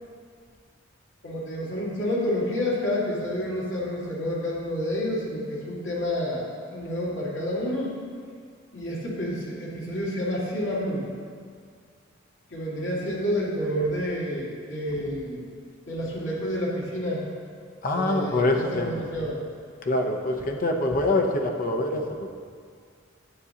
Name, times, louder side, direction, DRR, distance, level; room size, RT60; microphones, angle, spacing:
voice 1, 1.2-6.4 6.7-8.0 8.7-11.1 12.5-15.5 15.9-17.2 17.9-19.4, equal, 85° left, -6 dB, 2.0 m, -29 dB
voice 2, 17.8-19.0 19.8-22.3, left 2 dB, 45° left, 2 dB, 0.7 m, -25 dB
9.7 x 7.7 x 2.8 m, 2.1 s
head